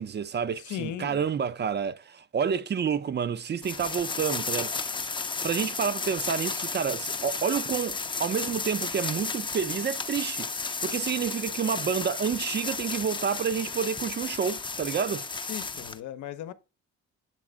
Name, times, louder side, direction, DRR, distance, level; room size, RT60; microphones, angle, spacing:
voice 1, 0.0-4.8 5.4-15.3, right 7 dB, 35° right, 0.5 m, -29 dB
voice 2, 0.6-1.2 15.5-16.5, left 11 dB, 75° left, 0.8 m, -37 dB
sound 1, 3.6-16.0, left 4 dB, 15° left, 0.5 m, -33 dB
7.5 x 3.3 x 4.9 m
cardioid pair, 90°, 30 cm